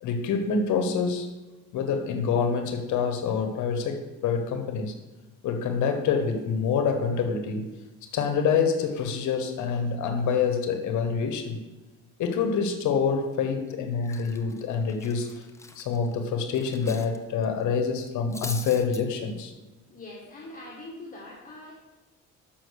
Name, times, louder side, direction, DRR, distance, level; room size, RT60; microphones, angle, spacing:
voice 1, 0.0-1.3 1.7-4.9 5.4-7.7 8.1-11.6 12.2-15.5 15.8-19.5, left 6 dB, 70° left, 6 dB, 1.0 m, -26 dB
Cutlery silverware, 13.7-13.8 14.0-17.2 17.4-17.6 18.0-19.0, left 3 dB, 10° left, 0.6 m, -41 dB
voice 2, 19.9-21.7, left 2 dB, 25° left, -4 dB, 1.6 m, -43 dB
6.4 x 6.1 x 6.4 m, 1.2 s
cardioid pair, 110°, 30 cm